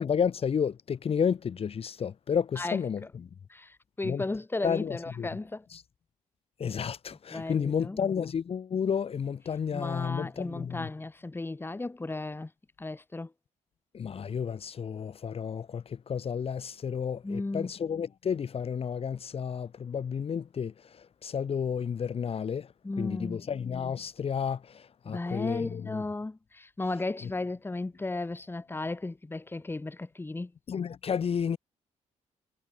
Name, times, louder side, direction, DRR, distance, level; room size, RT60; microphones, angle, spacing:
voice 1, 0.0-3.0 4.0-4.2 4.6-5.3 5.7-5.8 6.6-10.9 13.9-22.7 23.0-26.0 27.2-27.3 30.7-31.6, left 7 dB, 45° left, 5.0 m, -31 dB
voice 2, 3.5-5.7 7.3-8.0 9.7-12.5 12.8-13.3 17.2-17.7 22.8-23.5 25.0-30.5, left 2 dB, 15° left, 7.4 m, -35 dB
cardioid pair, 100°, 13 cm